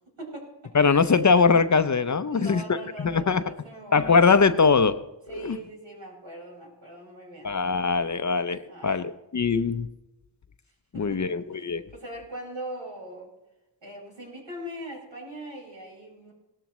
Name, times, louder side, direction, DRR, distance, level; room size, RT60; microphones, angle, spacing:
voice 1, 0.2-1.3 2.3-4.3 5.3-7.6 8.7-9.1 10.9-13.3 13.8-16.3, right 1 dB, 75° right, -2 dB, 5.5 m, -41 dB
voice 2, 0.7-2.6 3.0-3.4 3.9-5.0 5.4-5.6 7.4-9.9 11.0-11.8, left 5 dB, 40° left, 12 dB, 0.6 m, -21 dB
18.0 x 13.0 x 3.1 m, 0.97 s
wide cardioid pair, 70°, 45 cm